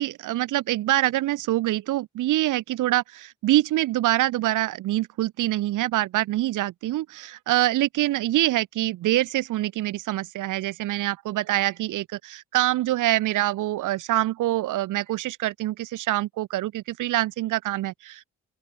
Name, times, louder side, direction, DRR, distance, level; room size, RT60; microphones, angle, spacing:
voice 1, 0.0-18.2, right 15 dB, 85° right, 2.6 m, -25 dB
open air
cardioid pair, 90°, 30 cm